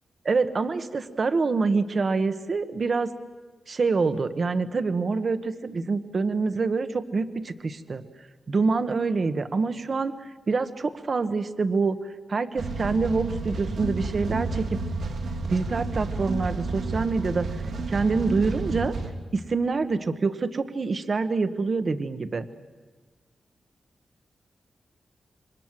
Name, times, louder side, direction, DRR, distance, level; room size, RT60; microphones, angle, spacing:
voice 1, 0.2-3.1 3.7-8.0 8.5-14.8 15.5-17.5 17.9-18.9 19.3-22.4, right 4 dB, 40° right, 10 dB, 1.2 m, -26 dB
sound 1, 12.6-19.1, right 3 dB, 80° right, 3.2 m, -31 dB
28.0 x 25.0 x 7.5 m, 1.4 s
wide cardioid pair, 140°, 0 cm